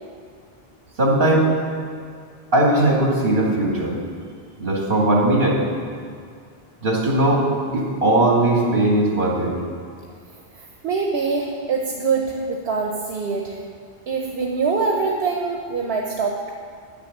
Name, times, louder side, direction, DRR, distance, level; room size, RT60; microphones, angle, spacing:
voice 1, 1.0-1.5 2.5-3.9 4.6-5.6 6.8-7.5 7.7-9.6, right 1 dB, 60° right, -2 dB, 2.3 m, -18 dB
voice 2, 10.5-13.6 14.1-16.5, right 4 dB, 80° right, 1 dB, 1.0 m, -24 dB
9.7 x 6.8 x 7.2 m, 2.2 s
omnidirectional pair, 1.0 m